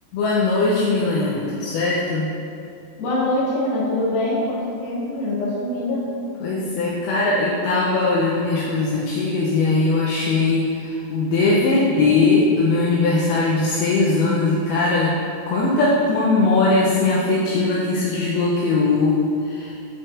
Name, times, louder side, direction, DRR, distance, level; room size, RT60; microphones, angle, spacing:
voice 1, 0.1-2.3 6.4-15.1 15.5-19.2 19.4-19.7, left 3 dB, 80° left, -6 dB, 2.4 m, -20 dB
voice 2, 3.0-6.1, left 1 dB, 55° left, -8 dB, 2.0 m, -24 dB
9.0 x 4.6 x 2.4 m, 2.7 s
omnidirectional pair, 4.8 m